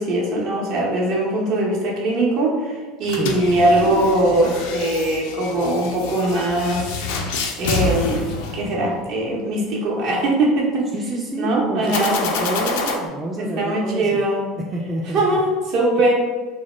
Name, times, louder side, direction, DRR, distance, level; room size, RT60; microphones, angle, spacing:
voice 1, 0.0-6.9 7.2-10.9 11.4-12.7 13.4-14.5 15.1-16.1, right 1 dB, 55° right, -3 dB, 0.7 m, -21 dB
sound 1, 3.0-9.2 11.9-12.9, left 3 dB, 70° left, 0.3 m, -27 dB
voice 2, 3.1-3.4 10.9-14.2 14.7-15.4 16.0-16.1, right 1 dB, 20° right, -1 dB, 0.3 m, -28 dB
2.1 x 2.1 x 3.0 m, 1.3 s
hypercardioid pair, 75°, 0 cm